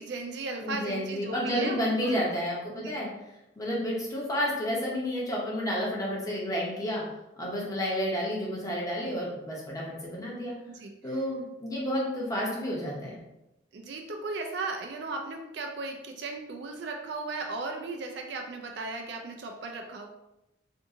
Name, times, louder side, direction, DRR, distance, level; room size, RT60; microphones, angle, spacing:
voice 1, 0.0-2.2 2.8-3.0 10.8-10.9 13.7-20.1, right 3 dB, 60° right, 3 dB, 0.4 m, -36 dB
voice 2, 0.6-3.1 3.6-7.0 7.4-10.5 11.0-13.2, equal, 15° left, -5 dB, 0.8 m, -30 dB
2.7 x 2.5 x 3.6 m, 0.91 s
head